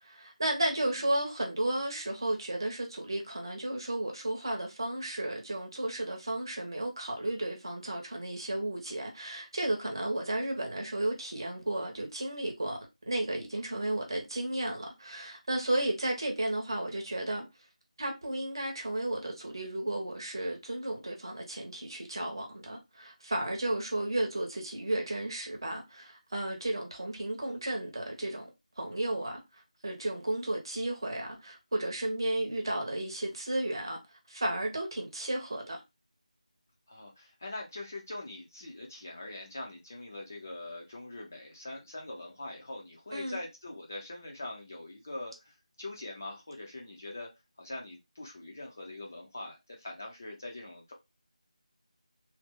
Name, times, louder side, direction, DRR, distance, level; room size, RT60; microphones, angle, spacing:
voice 1, 0.0-12.8 13.1-17.4 18.0-28.5 28.8-35.8 43.1-43.4, right 1 dB, 35° right, 0.9 m, -33 dB
voice 2, 36.9-47.3 47.6-50.9, left 2 dB, 20° left, 0.4 m, -43 dB
3.1 x 2.0 x 3.4 m
figure-of-eight pair, 175°, 4 cm